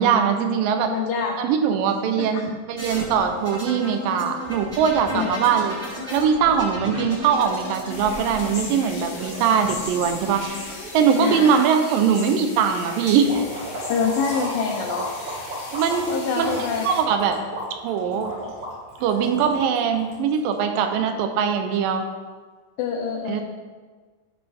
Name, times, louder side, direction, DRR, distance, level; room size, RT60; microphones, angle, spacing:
voice 1, 0.0-0.9 1.4-5.7 6.1-10.4 10.9-13.4 15.7-16.1 16.4-16.5 16.8-17.4 17.8-18.3 19.0-22.1 23.3-23.4, right 7 dB, 90° right, 6 dB, 2.4 m, -21 dB
voice 2, 0.9-1.4 2.2-2.5 5.1-5.4 11.2-11.6 13.9-15.1 16.1-16.9 22.8-23.4, left 6 dB, 80° left, 0 dB, 2.4 m, -26 dB
sound 1, 2.8-11.3 12.4-13.0, left 1 dB, 25° right, 1.9 m, -35 dB
sound 2, 7.9-17.0, left 2 dB, 40° left, 1.9 m, -38 dB
sound 3, 13.2-20.6, right 1 dB, 55° right, 3.2 m, -34 dB
11.5 x 5.9 x 3.5 m, 1.4 s
omnidirectional pair, 3.9 m